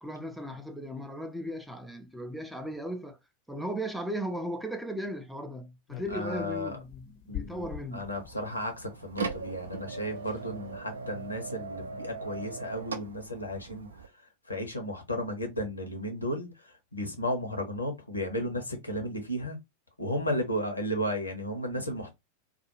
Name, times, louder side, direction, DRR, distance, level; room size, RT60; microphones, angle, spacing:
voice 1, 0.0-3.2 3.5-8.1, equal, ahead, 0.4 m, -37 dB
sound 1, 5.9-8.4 9.6-9.7 9.9-10.0 10.2-10.5 11.0-11.3, left 11 dB, 45° left, 0.6 m, -44 dB
voice 2, 6.1-6.8 7.3-7.7 7.9-13.9 14.5-19.6 20.0-22.1, equal, 80° left, 0.8 m, -34 dB
sound 2, 8.1-14.1, right 4 dB, 70° right, 0.4 m, -39 dB
2.4 x 2.2 x 2.8 m
figure-of-eight pair, 90°, 0 cm